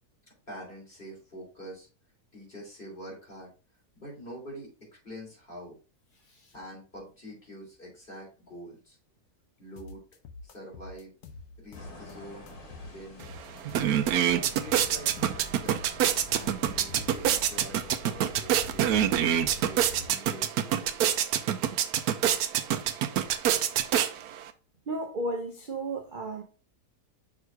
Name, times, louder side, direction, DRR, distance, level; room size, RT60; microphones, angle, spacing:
voice 1, 0.5-1.9 2.3-3.5 4.0-4.7 5.0-5.8 6.5-9.0 9.6-10.0 10.4-11.1 11.6-12.5 12.8-13.3 14.2-15.8 16.3-21.2, equal, 35° left, 3.4 m, -45 dB
sound 1, 9.8-12.1 12.5-14.1 14.4-17.6, left 3 dB, 90° left, 1.3 m, -47 dB
sound 2, 11.7-20.1, left 2 dB, 70° left, 2.1 m, -46 dB
sound 3, 13.2-13.3 13.6-24.5, right 10 dB, 85° right, 1.1 m, -26 dB
voice 2, 24.9-26.4, right 2 dB, 45° right, 0.8 m, -33 dB
6.1 x 3.6 x 4.6 m
omnidirectional pair, 1.6 m